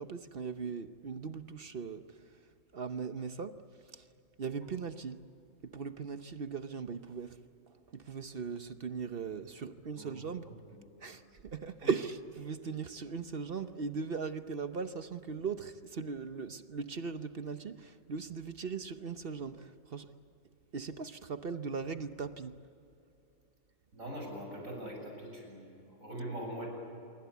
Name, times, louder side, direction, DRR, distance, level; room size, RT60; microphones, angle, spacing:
voice 1, 0.0-2.4 2.7-3.6 3.9-4.1 4.4-5.3 5.6-7.4 7.7-10.5 11.0-20.1 20.7-22.6, right 5 dB, 50° right, 1.0 m, -39 dB
voice 2, 10.0-10.3 10.7-11.2 11.8-11.9 23.9-26.7, right 1 dB, 85° right, 8.1 m, -43 dB
26.5 x 23.5 x 8.3 m
omnidirectional pair, 1.4 m